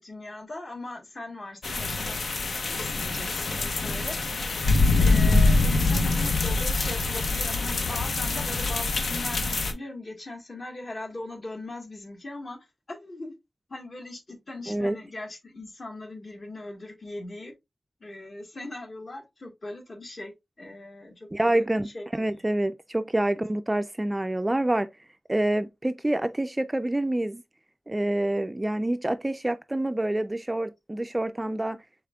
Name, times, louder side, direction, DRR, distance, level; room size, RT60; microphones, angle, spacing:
voice 1, 0.0-2.2 2.6-4.2 4.9-13.3 13.7-17.5 18.0-22.0, left 2 dB, 50° left, 1.4 m, -40 dB
sound 1, 1.6-9.7, left 3 dB, 80° left, 0.7 m, -24 dB
voice 2, 21.3-24.9 25.3-27.4 27.9-31.8, right 1 dB, 20° right, 0.3 m, -27 dB
4.9 x 3.5 x 2.3 m
wide cardioid pair, 85°, 0 cm